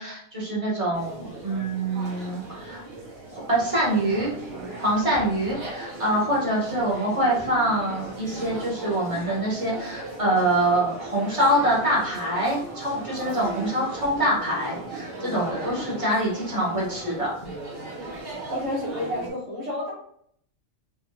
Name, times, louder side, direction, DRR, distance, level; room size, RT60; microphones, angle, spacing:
voice 1, 0.0-2.8 3.3-4.3 4.8-17.3, right 1 dB, 25° right, -4 dB, 1.1 m, -25 dB
sound 1, 0.9-19.3, right 2 dB, 50° right, 1.4 m, -37 dB
voice 2, 18.5-19.9, left 1 dB, 70° right, -4 dB, 1.8 m, -30 dB
4.6 x 2.5 x 2.3 m, 0.66 s
omnidirectional pair, 1.3 m